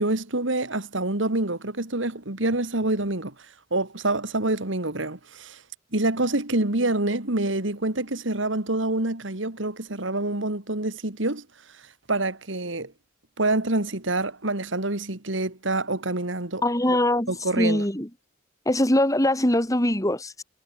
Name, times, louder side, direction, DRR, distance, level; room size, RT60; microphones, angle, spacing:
voice 1, 0.0-3.3 3.7-5.6 5.9-11.5 12.1-12.9 13.4-17.0 17.3-17.8, right 2 dB, 70° right, 2.6 m, -26 dB
voice 2, 16.6-18.1 18.7-20.4, left 1 dB, 15° left, 3.7 m, -22 dB
head